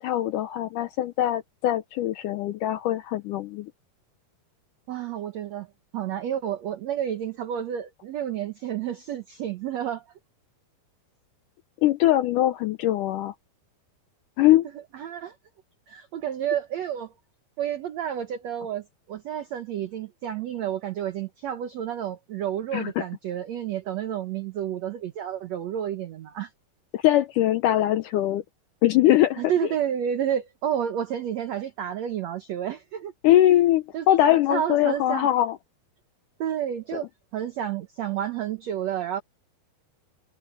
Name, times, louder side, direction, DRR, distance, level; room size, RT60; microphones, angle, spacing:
voice 1, 0.0-3.7 11.8-13.3 14.4-14.7 22.7-23.0 26.9-28.4 28.8-29.4 33.2-35.6, left 13 dB, 80° left, 1.9 m, -22 dB
voice 2, 4.9-5.7 5.9-10.1 14.7-15.3 15.9-17.1 17.6-26.5 29.4-33.1 33.9-35.3 36.4-37.1 37.3-39.2, right 10 dB, 65° right, 1.8 m, -30 dB
open air
omnidirectional pair, 4.4 m